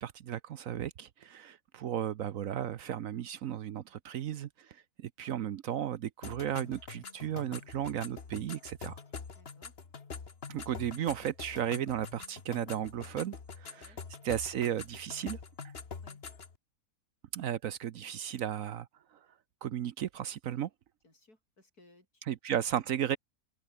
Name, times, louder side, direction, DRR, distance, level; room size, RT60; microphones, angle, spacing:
voice 1, 0.0-4.8 5.2-9.0 10.5-13.9 14.2-15.4 17.3-18.9 19.6-20.7 22.3-23.2, right 10 dB, 65° right, 1.0 m, -34 dB
sound 1, 6.2-16.6, left 5 dB, 40° left, 1.7 m, -45 dB
voice 2, 9.4-9.8 13.8-14.0 16.0-16.2 21.0-22.2 22.7-22.8, left 2 dB, 70° left, 8.0 m, -62 dB
omnidirectional pair, 1.7 m